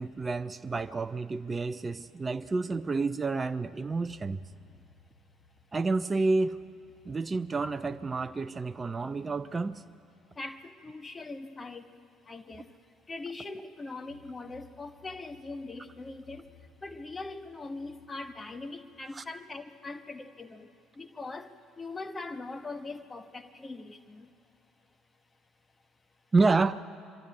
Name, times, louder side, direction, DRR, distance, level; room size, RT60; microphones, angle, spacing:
voice 1, 0.0-4.4 5.7-6.6 7.1-9.8 19.1-19.2 26.3-26.8, right 3 dB, 25° right, 0.5 m, -29 dB
sound 1, 3.9-11.8 12.2-12.3 14.0-18.7, left 4 dB, 85° left, 4.0 m, -61 dB
voice 2, 10.4-11.9 12.3-12.7 13.1-16.4 16.8-20.7 21.0-21.5 21.8-24.3, left 3 dB, 25° left, 1.3 m, -41 dB
24.0 x 12.5 x 9.5 m
figure-of-eight pair, 55°, 0 cm